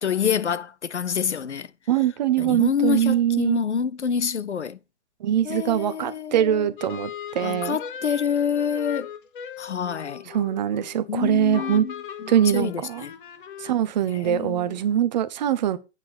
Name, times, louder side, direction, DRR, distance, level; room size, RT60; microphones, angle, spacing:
voice 1, 0.0-1.7 2.4-4.8 5.4-6.7 7.4-9.1 9.6-10.3 11.1-11.9 12.2-13.1 14.1-14.8, left 7 dB, 80° left, 0.6 m, -27 dB
voice 2, 1.9-3.6 5.2-7.8 10.3-11.9 12.3-13.0 13.6-15.8, right 10 dB, 40° right, 0.7 m, -23 dB
sound 1, 6.8-11.1 11.5-13.9, left 8 dB, 50° left, 0.8 m, -38 dB
8.2 x 3.9 x 6.7 m
figure-of-eight pair, 115°, 34 cm